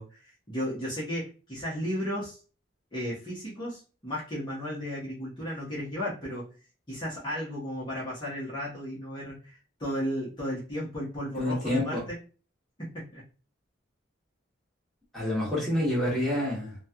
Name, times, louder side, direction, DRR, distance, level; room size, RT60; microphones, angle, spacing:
voice 1, 0.0-2.4 2.9-6.5 6.9-12.2 12.8-13.3, equal, 25° left, -9 dB, 1.0 m, -34 dB
voice 2, 11.3-12.0 15.1-16.8, left 1 dB, ahead, -7 dB, 1.2 m, -28 dB
3.1 x 2.3 x 2.8 m, 0.37 s
head